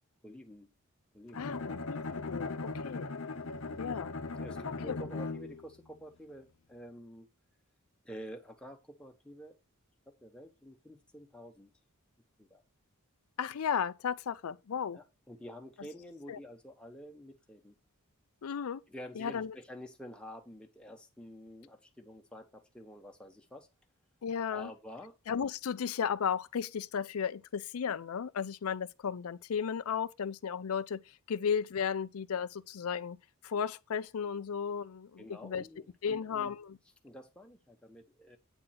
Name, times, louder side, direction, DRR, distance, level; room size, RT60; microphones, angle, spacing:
voice 1, 0.2-0.7 1.1-1.8 4.4-7.3 8.0-9.6 10.1-11.7 12.4-12.6 14.9-17.8 18.9-23.7 24.5-25.2 35.2-36.6 37.0-38.4, equal, 5° left, 1.1 m, -49 dB
Bowed string instrument, 1.3-5.7, left 3 dB, 65° left, 0.8 m, -39 dB
voice 2, 1.4-3.1 3.8-4.1 4.7-5.0 13.4-15.0 16.3-16.4 18.4-18.8 19.2-19.5 24.2-24.7 25.3-31.0 31.3-33.2 33.4-35.6 36.0-36.7, left 7 dB, 80° left, 0.4 m, -34 dB
8.9 x 3.8 x 5.7 m
head